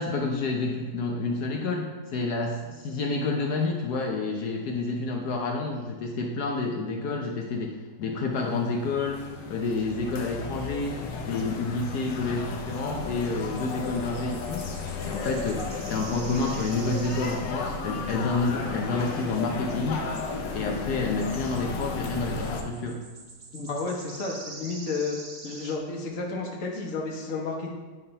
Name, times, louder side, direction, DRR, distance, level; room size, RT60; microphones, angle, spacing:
voice 1, 0.0-11.0 11.2-14.7 15.0-20.1 20.5-23.0, left 3 dB, 70° left, 1 dB, 1.3 m, -29 dB
sound 1, 8.4-22.6, left 4 dB, 90° left, 1.5 m, -34 dB
sound 2, 9.0-9.2 13.1-17.7 18.0-18.1 19.2-19.3 20.7-20.8 21.3-25.8, right 3 dB, 45° right, 0.6 m, -46 dB
voice 2, 23.5-25.2 25.4-27.7, left 3 dB, 50° left, -1 dB, 1.5 m, -31 dB
9.6 x 3.7 x 5.5 m, 1.4 s
omnidirectional pair, 1.9 m